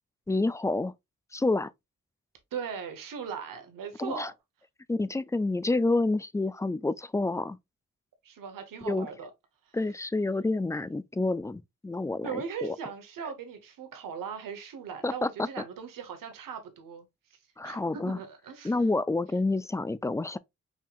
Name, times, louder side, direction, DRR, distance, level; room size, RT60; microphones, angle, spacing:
voice 1, 0.3-0.9 1.3-1.7 4.0-4.3 4.9-7.6 8.9-9.1 9.7-12.8 15.0-15.3 17.6-18.2 18.6-20.4, left 2 dB, 10° left, 0.3 m, -28 dB
voice 2, 2.5-4.3 8.2-9.3 9.7-9.8 10.3-10.4 10.7-10.9 12.2-17.4 17.6-18.8, right 6 dB, 85° right, 1.1 m, -39 dB
5.6 x 2.9 x 2.4 m
supercardioid pair, 50°, 32 cm